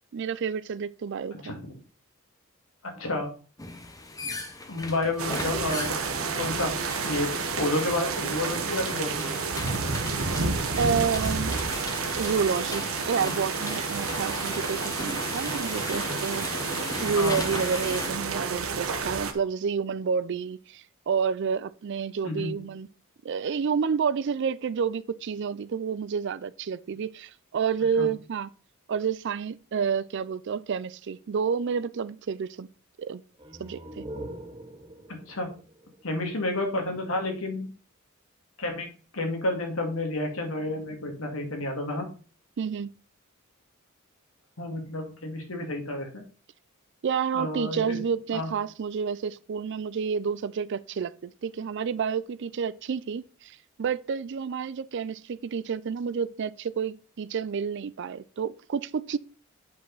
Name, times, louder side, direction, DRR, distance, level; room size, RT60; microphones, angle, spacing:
voice 1, 0.1-1.5 10.8-11.6 12.1-16.5 17.0-22.9 23.2-28.5 28.9-32.7 33.0-33.2 33.6-34.0 42.6-42.9 47.0-59.2, right 6 dB, 60° right, 0.4 m, -29 dB
voice 2, 1.4-1.7 2.8-3.3 4.7-5.9 6.3-6.7 7.0-9.3 17.2-17.4 22.2-22.6 28.0-28.1 35.1-35.5 36.0-37.7 38.6-42.1 44.6-46.2 47.3-48.0 48.3-48.5, left 2 dB, 80° left, 2.0 m, -30 dB
sound 1, 3.6-18.1, left 3 dB, 15° left, 0.8 m, -38 dB
sound 2, 5.2-19.3, right 4 dB, 85° right, 1.0 m, -30 dB
sound 3, 33.3-36.9, right 1 dB, 25° right, 1.1 m, -43 dB
8.1 x 5.2 x 3.9 m
head